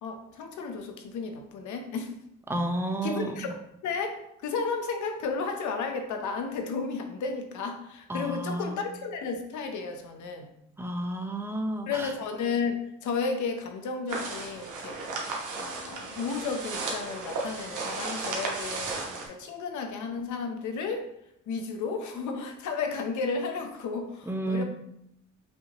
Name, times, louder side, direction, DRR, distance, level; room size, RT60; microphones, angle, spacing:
voice 1, 0.0-2.1 3.0-10.5 11.9-15.0 15.6-21.1 21.5-24.6, left 4 dB, 75° left, 5 dB, 0.8 m, -33 dB
voice 2, 2.5-3.3 8.1-8.8 10.8-12.1 24.3-24.6, right 1 dB, 10° right, 3 dB, 0.6 m, -31 dB
sound 1, 14.1-19.3, right 3 dB, 80° right, 1.1 m, -34 dB
5.5 x 2.8 x 2.9 m, 0.79 s
cardioid pair, 90°, 30 cm